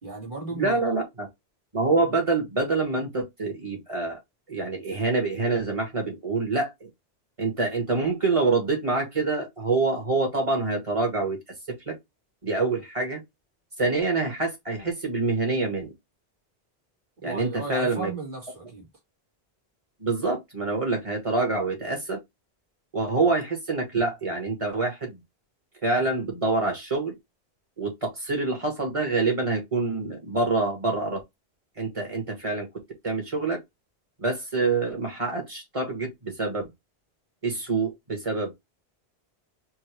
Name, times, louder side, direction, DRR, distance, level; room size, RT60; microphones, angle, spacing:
voice 1, 0.0-0.9 17.2-18.9, right 3 dB, 55° right, 2.2 m, -35 dB
voice 2, 0.6-1.3 1.7-4.2 4.5-6.9 7.4-11.4 11.7-11.9 12.4-13.2 13.8-15.9 17.2-18.1 20.0-22.2 22.9-25.2 25.8-27.1 27.8-31.2 31.8-32.7 33.0-33.6 34.2-36.7 37.4-38.5, right 3 dB, 30° right, 2.0 m, -26 dB
4.6 x 2.8 x 3.1 m
omnidirectional pair, 1.0 m